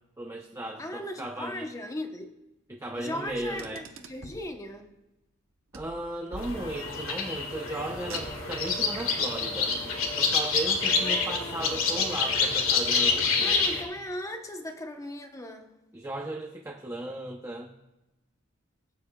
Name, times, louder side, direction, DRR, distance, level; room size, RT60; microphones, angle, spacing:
voice 1, 0.2-1.7 2.7-3.9 5.7-13.6 15.9-17.7, right 1 dB, 15° right, 0.7 m, -36 dB
voice 2, 0.8-2.3 2.9-4.9 10.9-11.9 13.4-15.7, left 1 dB, 15° left, 1.0 m, -38 dB
Car, 3.3-4.5 5.7-7.1 7.9-8.7, right 3 dB, 90° right, 1.0 m, -45 dB
sound 1, 6.4-13.8, left 4 dB, 85° left, 2.0 m, -27 dB
21.5 x 9.3 x 2.3 m
head